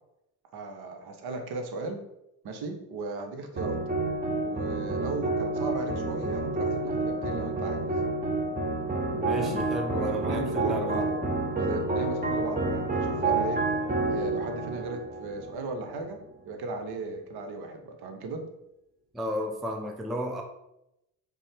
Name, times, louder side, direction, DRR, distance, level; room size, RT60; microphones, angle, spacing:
voice 1, 0.5-2.0 2.4-3.8 4.4-7.9 9.3-11.2 11.6-13.6 14.0-18.5, right 3 dB, 55° right, 5 dB, 0.8 m, -36 dB
sound 1, 3.6-16.0, right 2 dB, 20° right, 0.9 m, -29 dB
voice 2, 9.1-11.0 19.1-20.4, equal, ahead, 2 dB, 0.4 m, -33 dB
5.2 x 2.1 x 3.4 m, 0.86 s
figure-of-eight pair, 45°, 47 cm